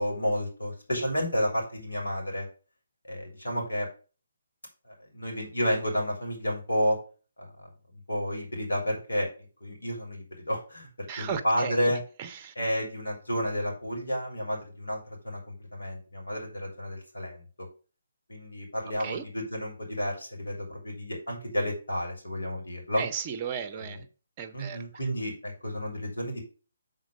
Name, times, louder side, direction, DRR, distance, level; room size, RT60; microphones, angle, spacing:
voice 1, 0.0-2.5 3.1-3.9 4.9-7.0 7.4-7.7 8.1-9.3 9.6-12.0 12.5-17.7 18.3-23.0 23.7-24.0 24.5-26.4, equal, 75° left, 3.0 m, -31 dB
voice 2, 11.1-11.7 12.2-12.5 19.0-19.2 23.0-24.1 24.4-24.8, right 7 dB, 25° right, 0.7 m, -35 dB
6.4 x 3.9 x 6.3 m
figure-of-eight pair, 140°, 0 cm